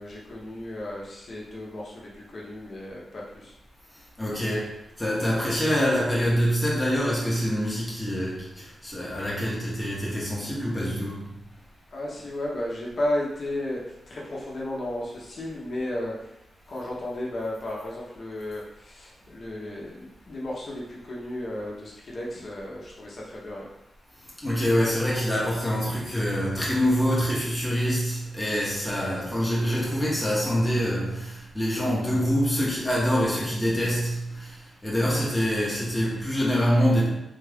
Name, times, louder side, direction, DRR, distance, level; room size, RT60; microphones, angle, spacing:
voice 1, 0.0-3.5 11.9-16.3 16.7-23.7, left 1 dB, 45° left, 0.7 m, -34 dB
voice 2, 4.2-11.2 24.4-34.5 34.8-37.1, equal, 5° left, 0.8 m, -25 dB
3.6 x 2.4 x 3.3 m
wide cardioid pair, 160°, 0 cm